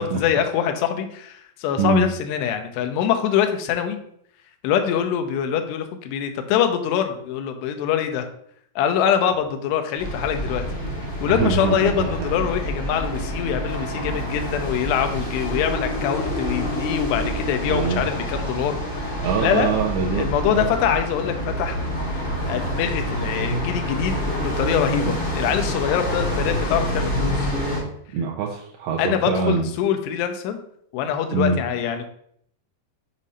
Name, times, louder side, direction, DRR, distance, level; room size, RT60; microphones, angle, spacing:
voice 1, 0.0-4.0 4.6-8.3 8.8-10.6 11.2-19.8 20.1-21.8 22.1-27.5 29.0-30.6 30.9-32.1, left 9 dB, 80° left, 6 dB, 2.7 m, -24 dB
voice 2, 1.8-2.1 11.3-12.3 17.7-18.1 19.2-20.7 28.1-29.7 31.3-31.6, right 5 dB, 80° right, -1 dB, 2.3 m, -24 dB
sound 1, 10.0-27.8, equal, 30° left, 1.3 m, -27 dB
7.3 x 2.7 x 5.4 m, 0.69 s
omnidirectional pair, 5.0 m